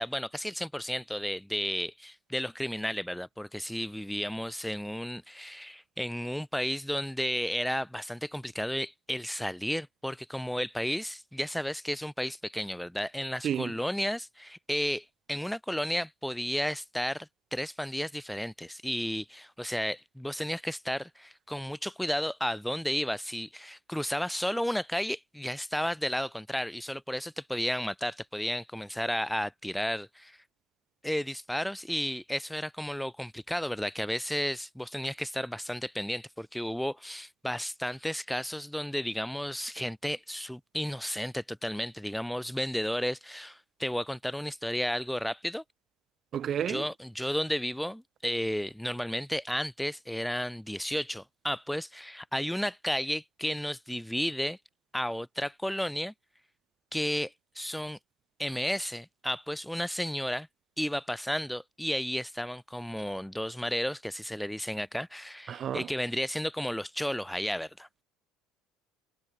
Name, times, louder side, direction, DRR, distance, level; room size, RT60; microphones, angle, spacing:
voice 1, 0.0-30.4 31.0-45.6 46.7-54.6 54.9-56.1 56.9-58.0 58.4-60.5 60.8-67.9, equal, ahead, 3.4 m, -33 dB
voice 2, 13.4-13.8 46.3-46.9 65.5-65.9, right 9 dB, 30° right, 3.5 m, -31 dB
cardioid pair, 180°, 0 cm